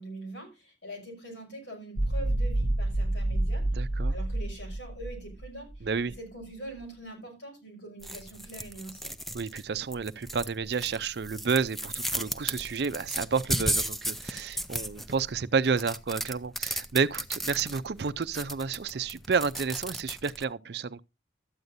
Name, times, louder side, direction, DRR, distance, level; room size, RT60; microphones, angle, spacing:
voice 1, 0.0-3.6 4.1-5.9 6.2-9.1, right 1 dB, 85° left, 5.6 m, -43 dB
sound 1, 2.0-6.2, right 1 dB, 45° left, 1.1 m, -29 dB
voice 2, 3.7-4.1 5.8-6.1 9.3-21.0, right 5 dB, 60° right, 0.5 m, -30 dB
sound 2, 8.0-20.4, equal, ahead, 0.4 m, -35 dB
13.0 x 9.4 x 2.6 m
head